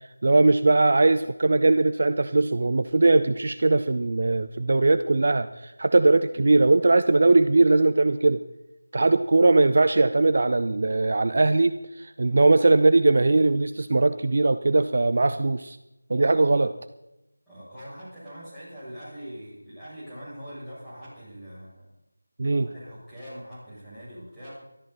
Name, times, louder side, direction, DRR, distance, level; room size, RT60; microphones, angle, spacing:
voice 1, 0.2-8.4 8.9-11.7 12.2-15.8 16.1-16.7 22.4-22.7, right 2 dB, 50° right, 11 dB, 0.6 m, -20 dB
voice 2, 17.5-21.9 22.6-24.5, equal, 5° left, -15 dB, 7.6 m, -42 dB
19.5 x 13.5 x 4.3 m, 0.92 s
figure-of-eight pair, 170°, 0 cm